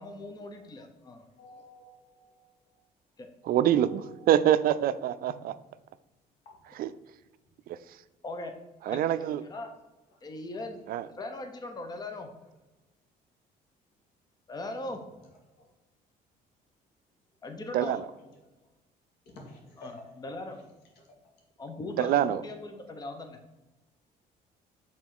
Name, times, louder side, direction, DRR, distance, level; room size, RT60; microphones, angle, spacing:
voice 1, 0.0-1.2 3.2-3.3 8.2-8.5 8.9-9.7 10.2-12.3 14.5-15.0 17.4-18.0 19.8-20.6 21.6-23.4, left 2 dB, 25° left, 5 dB, 0.9 m, -40 dB
voice 2, 1.4-2.4 3.7-4.6 9.0-9.2 19.4-19.9, left 1 dB, 80° left, 0 dB, 2.3 m, -52 dB
voice 3, 3.4-5.5 6.7-6.9 7.7-7.8 8.9-9.4 10.9-11.1 17.7-18.1 22.0-22.4, right 11 dB, 60° right, 14 dB, 0.4 m, -25 dB
6.1 x 3.8 x 6.0 m, 1.0 s
cardioid pair, 110°, 17 cm